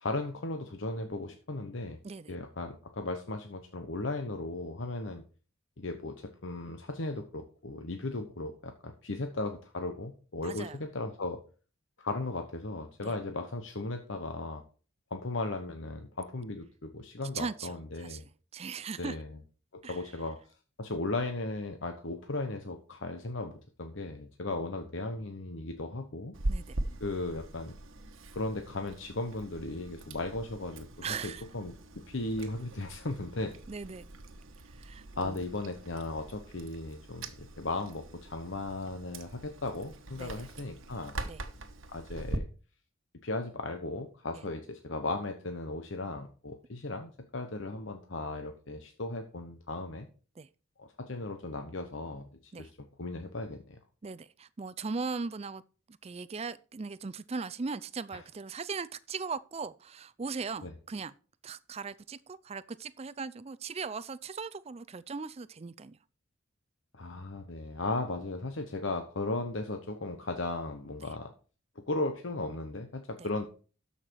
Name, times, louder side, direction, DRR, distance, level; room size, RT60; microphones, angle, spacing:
voice 1, 0.0-2.0 2.3-5.2 5.8-11.4 12.0-14.6 15.1-18.2 19.0-19.3 19.7-20.4 20.8-23.5 23.8-26.3 27.0-27.7 28.3-30.9 31.2-31.7 32.1-33.5 35.1-41.1 41.9-42.4 43.2-50.1 50.8-53.8 58.1-58.2 60.6-60.7 66.9-71.3 71.9-73.4, left 2 dB, 70° left, 1.0 m, -36 dB
voice 2, 10.4-10.8 13.0-13.2 17.3-19.2 19.8-20.0 26.5-26.8 31.0-31.5 33.7-34.1 34.8-35.4 40.2-40.5 41.2-41.4 50.4-50.5 52.5-52.7 54.0-55.6 55.9-61.1 61.4-66.0 73.2-73.3, right 4 dB, 30° right, 0.4 m, -39 dB
Chewing mastication, 26.3-42.4, right 1 dB, 80° right, 1.2 m, -42 dB
13.0 x 5.8 x 4.6 m
head